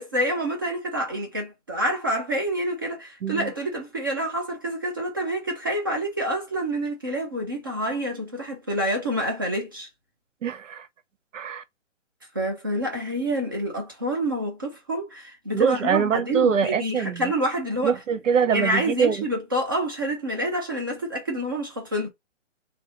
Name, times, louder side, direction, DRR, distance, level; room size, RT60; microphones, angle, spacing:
voice 1, 0.0-9.9 12.3-17.9 18.5-22.1, right 1 dB, 15° right, 0.6 m, -27 dB
voice 2, 10.4-10.9 11.3-11.6 15.5-17.3 17.8-19.2, right 7 dB, 75° right, 0.8 m, -23 dB
3.3 x 3.0 x 4.1 m
hypercardioid pair, 165°, 38 cm